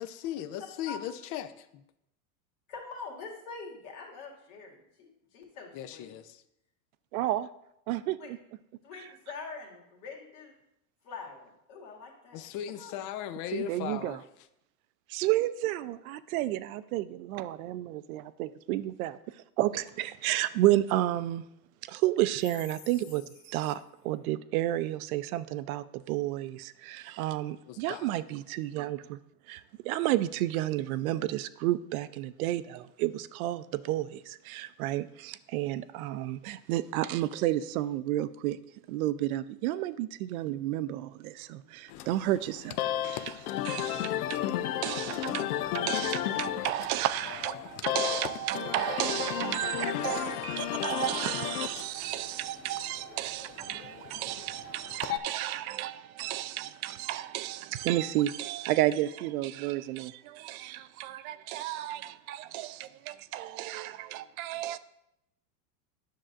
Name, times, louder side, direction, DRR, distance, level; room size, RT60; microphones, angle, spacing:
voice 1, 0.0-1.8 5.7-6.4 12.3-14.2 27.7-28.1 49.6-51.5, left 11 dB, 45° left, 0.6 m, -39 dB
voice 2, 2.7-6.1 8.2-8.3 8.8-10.5 11.0-13.0, left 4 dB, 60° left, 2.2 m, -44 dB
voice 3, 7.1-7.5 7.9-8.4 13.5-14.2 15.1-21.4 21.8-29.2 29.5-38.6 38.9-42.8 43.0-44.4 44.8-64.8, right 14 dB, 70° right, 0.6 m, -32 dB
sound 1, 41.9-55.2, left 12 dB, 85° left, 0.6 m, -34 dB
Piano, 50.4-51.4, right 8 dB, 15° right, 0.5 m, -48 dB
10.0 x 6.3 x 2.5 m
supercardioid pair, 120°, 44 cm